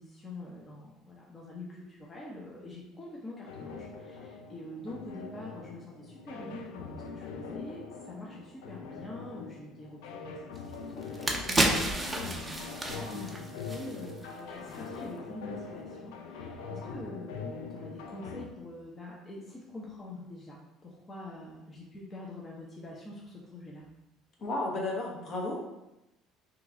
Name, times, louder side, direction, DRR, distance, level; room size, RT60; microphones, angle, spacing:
voice 1, 0.0-10.0 10.3-10.5 10.9-23.8, left 1 dB, 25° left, -4 dB, 0.7 m, -45 dB
sound 1, 3.5-18.4, left 5 dB, 85° left, 0.3 m, -42 dB
sound 2, 10.6-10.7 11.0-14.3 14.6-14.8, right 1 dB, 15° right, 0.5 m, -31 dB
voice 2, 24.4-25.6, left 2 dB, 50° left, -2 dB, 0.9 m, -33 dB
3.0 x 2.4 x 3.6 m, 0.94 s
supercardioid pair, 100°, 0 cm